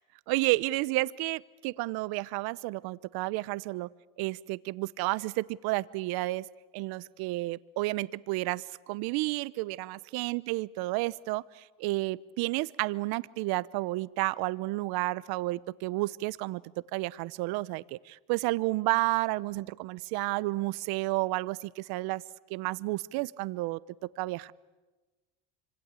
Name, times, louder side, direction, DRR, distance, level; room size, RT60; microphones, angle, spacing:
voice 1, 0.3-3.9 4.2-6.5 6.7-16.6 16.9-22.2 22.5-23.8 24.2-24.5, right 20 dB, 65° right, 19 dB, 0.9 m, -31 dB
26.0 x 25.5 x 8.3 m, 1.2 s
supercardioid pair, 100°, 40 cm